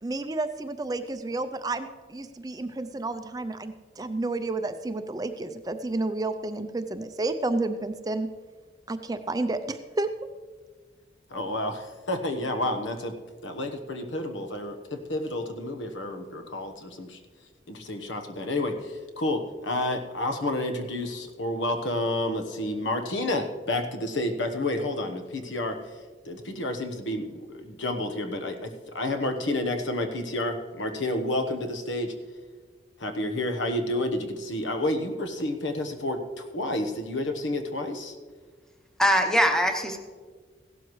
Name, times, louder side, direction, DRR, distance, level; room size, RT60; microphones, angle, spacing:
voice 1, 0.0-8.3 8.9-10.1, right 2 dB, 20° right, 9 dB, 0.4 m, -31 dB
voice 2, 11.3-13.2 13.4-17.2 17.7-25.8 26.2-32.1 33.0-38.1, left 1 dB, 85° left, 6 dB, 1.2 m, -30 dB
voice 3, 39.0-40.0, equal, 5° left, 4 dB, 0.9 m, -22 dB
16.0 x 12.5 x 3.2 m, 1.5 s
head